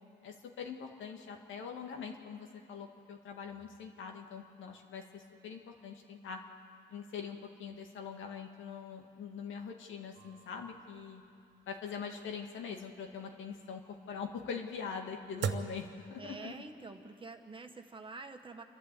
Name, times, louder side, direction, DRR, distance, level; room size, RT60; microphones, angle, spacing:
voice 1, 0.2-6.4 6.9-11.2 11.7-16.6, left 6 dB, 75° left, 3 dB, 2.1 m, -43 dB
sound 1, 10.1-16.8, right 6 dB, 60° right, 1.1 m, -43 dB
voice 2, 16.2-18.6, right 3 dB, 25° right, 5 dB, 1.5 m, -47 dB
29.0 x 11.5 x 8.5 m, 2.5 s
cardioid pair, 90°, 20 cm